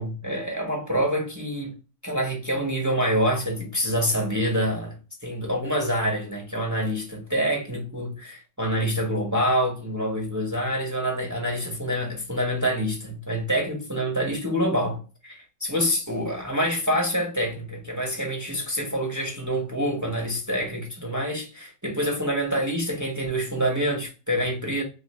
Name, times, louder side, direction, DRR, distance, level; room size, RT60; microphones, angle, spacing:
voice 1, 0.0-1.7 2.0-24.8, equal, 15° right, 0.7 m, -26 dB
3.4 x 2.5 x 3.2 m
omnidirectional pair, 1.3 m